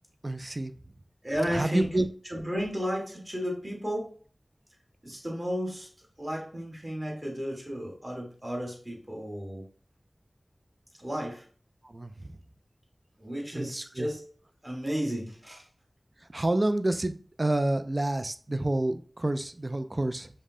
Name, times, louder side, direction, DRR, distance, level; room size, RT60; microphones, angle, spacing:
voice 1, 0.2-0.7 1.5-2.1 11.8-12.3 13.5-14.1 16.3-20.3, right 1 dB, 40° right, 10 dB, 0.4 m, -28 dB
voice 2, 1.2-1.9 2.3-4.1 5.0-5.9 6.2-9.7 11.0-11.4 13.2-14.2 14.6-15.6, equal, 25° right, -1 dB, 1.7 m, -33 dB
5.3 x 2.1 x 3.7 m, 0.42 s
wide cardioid pair, 55°, 0 cm